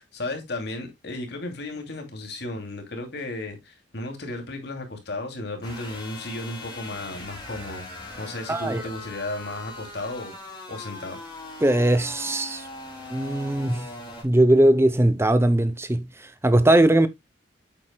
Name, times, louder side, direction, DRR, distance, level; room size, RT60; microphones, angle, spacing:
voice 1, 0.0-7.9 8.2-10.4 10.7-11.2, left 2 dB, 65° left, 2.7 m, -34 dB
sound 1, 5.6-14.2, left 2 dB, 25° left, 4.2 m, -40 dB
voice 2, 8.5-8.8 11.6-12.7 13.1-13.9 14.2-17.1, right 1 dB, 15° right, 0.6 m, -20 dB
8.8 x 7.7 x 2.2 m
head